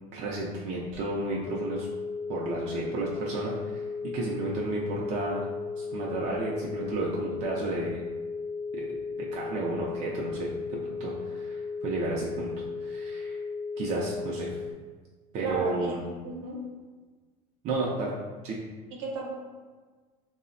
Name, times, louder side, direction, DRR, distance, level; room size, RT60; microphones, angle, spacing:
voice 1, 0.1-1.9 2.3-3.8 4.1-5.4 5.8-8.0 8.7-8.9 9.2-13.4 13.8-14.5 15.3-16.0 17.6-18.1 18.4-18.6, right 2 dB, 35° right, -4 dB, 0.4 m, -32 dB
sound 1, 1.4-14.7, left 4 dB, 35° left, 0.4 m, -35 dB
voice 2, 15.4-16.6 18.9-19.3, right 3 dB, 65° right, -1 dB, 0.8 m, -35 dB
3.3 x 2.0 x 2.5 m, 1.4 s
supercardioid pair, 135°, 19 cm